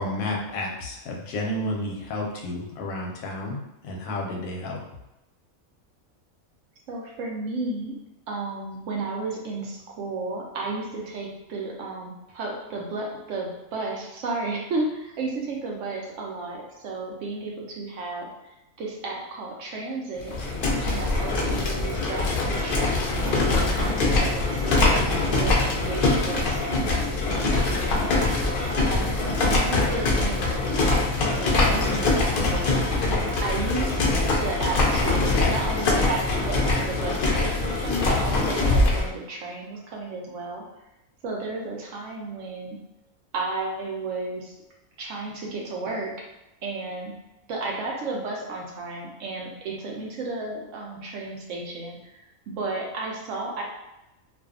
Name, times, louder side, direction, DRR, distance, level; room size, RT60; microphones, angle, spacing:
voice 1, 0.0-4.8, left 1 dB, 90° left, 0 dB, 1.0 m, -31 dB
voice 2, 6.9-7.9 8.3-18.3 18.8-20.3 20.8-27.5 28.6-29.1 29.4-32.9 33.4-34.0 34.4-40.6 41.2-42.8 43.3-44.6 45.0-46.3 46.6-47.1 47.5-53.6, right 3 dB, 70° right, -1 dB, 0.9 m, -33 dB
sound 1, 20.2-39.1, left 2 dB, 65° left, 0.5 m, -23 dB
2.6 x 2.3 x 2.4 m, 0.93 s
omnidirectional pair, 1.4 m